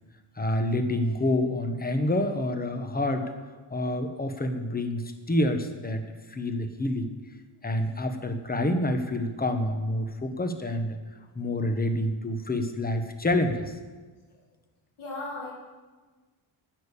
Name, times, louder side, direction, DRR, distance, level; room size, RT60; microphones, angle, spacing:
voice 1, 0.3-3.3 3.7-6.0 6.3-7.1 7.6-11.0 11.3-13.7, left 1 dB, 20° left, 7 dB, 1.2 m, -27 dB
voice 2, 15.0-15.5, left 2 dB, 75° left, -7 dB, 4.5 m, -36 dB
10.5 x 6.7 x 8.4 m, 1.3 s
cardioid pair, 105°, 50 cm